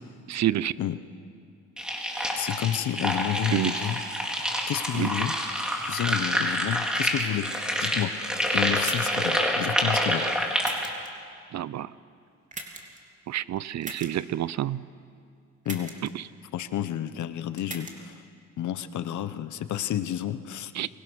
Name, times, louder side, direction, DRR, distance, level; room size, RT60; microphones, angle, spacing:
voice 1, 0.3-0.7 3.5-3.7 4.9-5.1 10.2-10.3 11.5-11.9 13.3-14.9 16.1-16.3 20.7-20.9, right 12 dB, 65° right, 18 dB, 0.7 m, -28 dB
sound 1, 1.8-10.9, equal, 5° right, 4.0 m, -27 dB
voice 2, 2.3-4.0 4.7-5.3 5.8-8.2 8.5-10.3 15.6-16.0 16.5-18.2 18.6-20.7, left 11 dB, 75° left, 12 dB, 1.2 m, -30 dB
sound 2, 8.8-9.3 10.6-11.1 12.5-13.0 13.8-14.1 15.6-16.1 17.6-17.9, right 2 dB, 25° right, 3.3 m, -38 dB
29.0 x 23.5 x 6.3 m, 2.3 s
cardioid pair, 90°, 30 cm